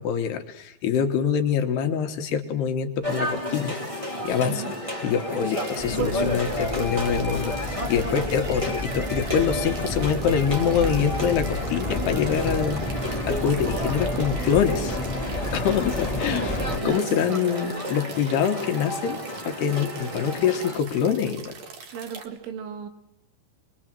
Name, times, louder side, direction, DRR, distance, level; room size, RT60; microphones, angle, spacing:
voice 1, 0.0-4.8 5.0-15.0 15.3-16.6 16.8-19.2 19.4-21.5, left 7 dB, 70° left, 6 dB, 2.8 m, -25 dB
sound 1, 3.0-20.8, equal, 30° right, 0.6 m, -31 dB
voice 2, 4.4-4.7 16.3-17.6 21.9-22.9, right 7 dB, 85° right, 8 dB, 4.2 m, -36 dB
sound 2, 5.5-22.3, right 5 dB, 55° right, 2.0 m, -43 dB
sound 3, 5.8-16.8, left 2 dB, 10° left, 2.1 m, -31 dB
24.5 x 22.5 x 7.5 m, 0.85 s
omnidirectional pair, 5.4 m